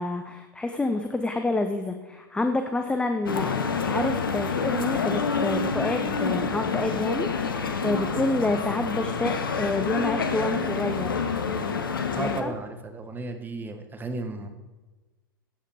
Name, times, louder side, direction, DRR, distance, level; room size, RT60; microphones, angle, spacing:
voice 1, 0.0-3.5 3.9-11.3 12.1-12.5, left 2 dB, 10° left, 7 dB, 0.8 m, -28 dB
sound 1, 3.3-12.4, left 5 dB, 75° left, 1.2 m, -28 dB
voice 2, 12.1-14.5, right 3 dB, 15° right, 6 dB, 1.6 m, -34 dB
15.0 x 8.3 x 4.7 m, 1.2 s
figure-of-eight pair, 100°, 12 cm